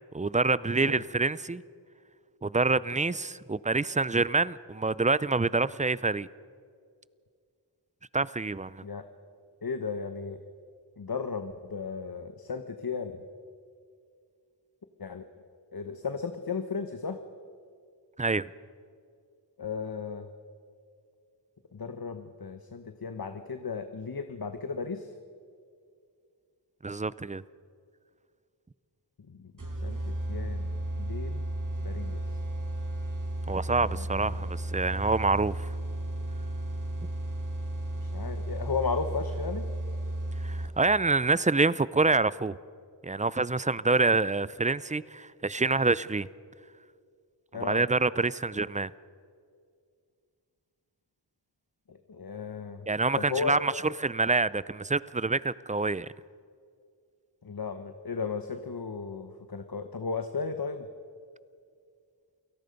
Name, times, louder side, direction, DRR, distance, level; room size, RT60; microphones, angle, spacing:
voice 1, 0.1-1.6 2.4-6.3 8.1-8.8 18.2-18.5 26.8-27.4 33.5-35.7 40.4-42.6 43.0-46.3 47.6-48.9 52.9-56.1, right 3 dB, 20° right, 19 dB, 0.4 m, -26 dB
voice 2, 9.6-10.4 11.0-13.2 15.0-15.3 15.7-17.2 19.6-20.3 21.7-25.1 29.3-29.5 29.8-31.5 31.8-32.2 33.8-34.5 38.0-39.7 47.5-47.8 51.9-52.9 53.2-53.6 57.4-60.9, left 5 dB, 55° left, 7 dB, 1.1 m, -35 dB
sound 1, 29.6-41.0, right 1 dB, 45° right, 2.6 m, -34 dB
29.0 x 18.0 x 5.3 m, 2.2 s
wide cardioid pair, 60°, 44 cm